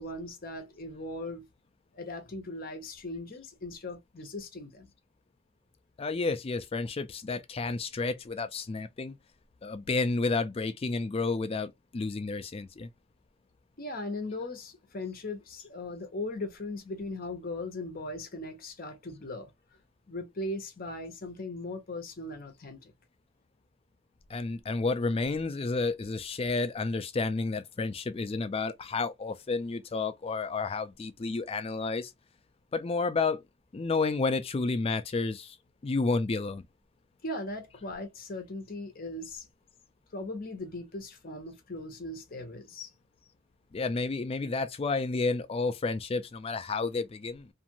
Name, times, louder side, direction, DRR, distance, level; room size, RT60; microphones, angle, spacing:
voice 1, 0.0-1.4 1.9-4.9 13.8-19.5 20.1-22.9 37.2-39.5 40.1-42.9, left 2 dB, 45° left, 0.8 m, -38 dB
voice 2, 6.0-9.1 9.6-12.9 24.3-32.1 32.7-33.4 33.7-35.6 35.8-36.6 43.7-47.5, left 3 dB, 25° left, 0.3 m, -31 dB
2.6 x 2.4 x 2.8 m
head